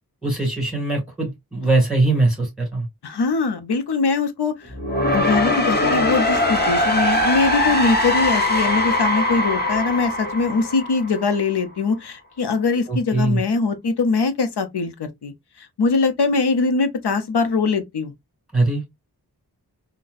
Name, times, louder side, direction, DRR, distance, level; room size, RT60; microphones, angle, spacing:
voice 1, 0.2-2.9 12.9-13.4 18.5-18.8, right 2 dB, ahead, 2.1 m, -21 dB
voice 2, 3.0-4.7 5.1-15.3 15.6-18.1, left 4 dB, 80° left, 0.7 m, -22 dB
sound 1, 4.6-11.6, left 1 dB, 25° left, 1.0 m, -21 dB
3.9 x 2.2 x 2.5 m
wide cardioid pair, 70°, 39 cm